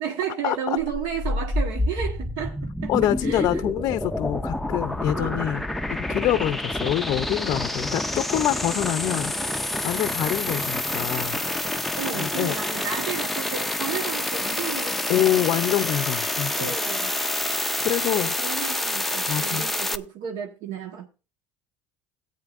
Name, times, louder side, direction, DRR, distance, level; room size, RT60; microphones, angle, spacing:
voice 1, 0.0-3.6 5.1-5.7 12.0-15.4 16.5-17.2 18.0-21.1, right 8 dB, 75° right, 1.3 m, -33 dB
sound 1, 0.8-20.0, left 1 dB, ahead, 0.5 m, -28 dB
voice 2, 2.9-9.3 9.8-11.4 12.1-12.5 15.1-16.8 17.8-18.3 19.3-19.7, left 13 dB, 55° left, 0.5 m, -26 dB
17.0 x 8.8 x 2.5 m
cardioid pair, 150°, 7 cm